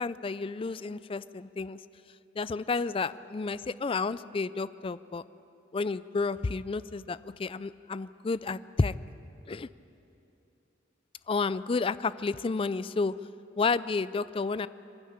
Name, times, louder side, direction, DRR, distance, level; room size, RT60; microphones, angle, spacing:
voice 1, 0.0-1.8 2.4-5.2 5.7-8.9 9.5-9.7 11.3-13.1 13.6-14.7, left 4 dB, 30° left, 16 dB, 0.4 m, -31 dB
26.0 x 12.0 x 8.8 m, 2.9 s
head